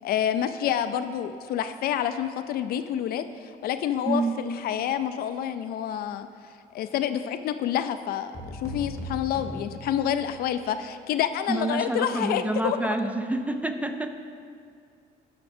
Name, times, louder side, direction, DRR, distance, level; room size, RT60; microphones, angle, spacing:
voice 1, 0.0-6.3 6.7-12.9, left 10 dB, 65° left, 10 dB, 0.4 m, -28 dB
sound 1, 8.3-10.6, left 1 dB, 20° left, 1.6 m, -38 dB
voice 2, 11.5-14.2, right 2 dB, 10° right, 7 dB, 0.4 m, -28 dB
12.5 x 5.9 x 2.6 m, 2.3 s
cardioid pair, 110°, 17 cm